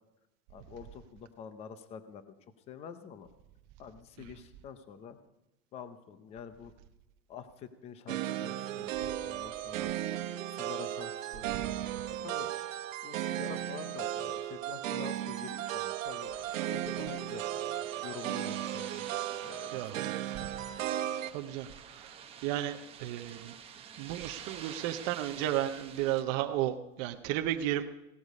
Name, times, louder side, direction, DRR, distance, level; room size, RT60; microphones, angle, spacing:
voice 1, 0.5-2.3 2.7-3.3 3.8-5.2 5.7-6.7 7.3-8.9 9.2-9.9 10.5-11.8 12.1-12.8 13.0-16.4 16.7-17.5 18.0-19.1 19.4-20.5, left 7 dB, 15° left, 12 dB, 0.6 m, -47 dB
sound 1, 8.1-21.3, right 12 dB, 85° right, 1.1 m, -35 dB
sound 2, 16.1-26.2, right 8 dB, 15° right, 1.0 m, -49 dB
voice 2, 21.3-22.1 22.4-23.5 24.0-27.8, right 13 dB, 30° right, 6 dB, 0.7 m, -33 dB
17.0 x 13.0 x 5.3 m, 0.94 s
supercardioid pair, 170°, 38 cm